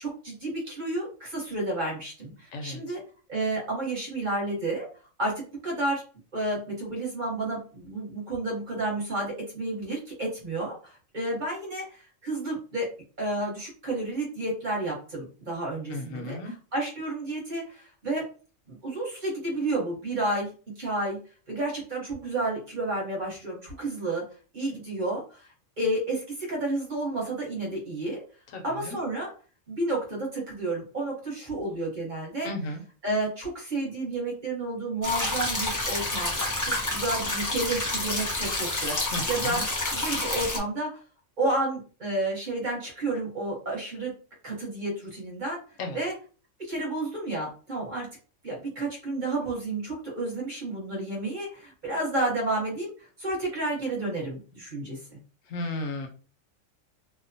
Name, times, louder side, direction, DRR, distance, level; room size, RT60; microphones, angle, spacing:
voice 1, 0.0-3.0 3.3-4.9 5.2-5.3 5.6-6.0 6.3-12.9 13.2-16.4 16.7-18.2 18.7-21.2 21.5-24.2 24.5-28.2 28.6-29.3 29.7-32.5 33.0-39.6 39.9-40.9 41.4-44.1 44.4-45.6 45.9-46.1 46.6-48.1 48.4-55.2, right 2 dB, 40° right, -3 dB, 1.1 m, -31 dB
voice 2, 2.5-2.9 15.9-16.5 28.5-29.0 32.4-32.8 39.1-39.6 45.8-46.0 55.4-56.1, left 2 dB, 80° left, 4 dB, 1.0 m, -34 dB
sound 1, 35.0-40.6, left 2 dB, 25° left, 0.4 m, -29 dB
2.7 x 2.2 x 2.6 m, 0.37 s
omnidirectional pair, 1.4 m